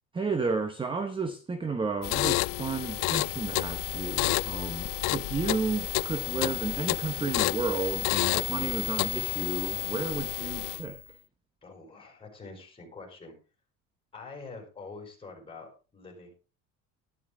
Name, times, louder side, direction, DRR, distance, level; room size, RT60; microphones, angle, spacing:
voice 1, 0.1-11.0, right 4 dB, 15° right, 0.9 m, -32 dB
sound 1, 2.0-11.0, left 23 dB, 80° left, 0.5 m, -30 dB
voice 2, 11.6-13.3 14.1-16.3, left 3 dB, 15° left, 5.1 m, -45 dB
12.5 x 11.0 x 3.7 m
cardioid pair, 145°, 34 cm